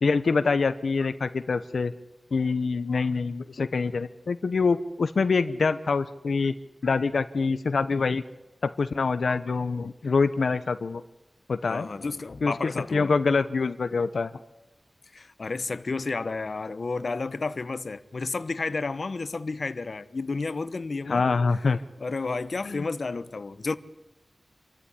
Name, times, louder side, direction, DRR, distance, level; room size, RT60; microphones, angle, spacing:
voice 1, 0.0-1.9 2.3-6.5 6.8-8.2 8.6-11.0 11.5-11.9 12.4-14.3 21.1-21.8 22.6-22.9, left 4 dB, 80° left, 0.8 m, -25 dB
voice 2, 11.7-13.1 15.1-21.3 22.0-23.7, left 3 dB, 60° left, 1.0 m, -31 dB
27.5 x 14.0 x 9.9 m
wide cardioid pair, 95°, 0 cm